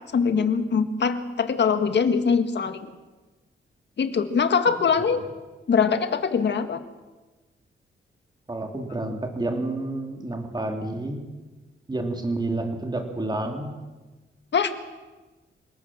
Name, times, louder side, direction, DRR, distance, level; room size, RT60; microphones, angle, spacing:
voice 1, 0.1-2.9 4.0-5.2 5.7-6.8 14.5-14.7, left 6 dB, 60° left, 8 dB, 1.9 m, -22 dB
voice 2, 8.5-11.2 11.9-13.7, right 2 dB, 20° right, 3 dB, 3.4 m, -29 dB
26.5 x 19.0 x 7.6 m, 1.2 s
wide cardioid pair, 135°, 20 cm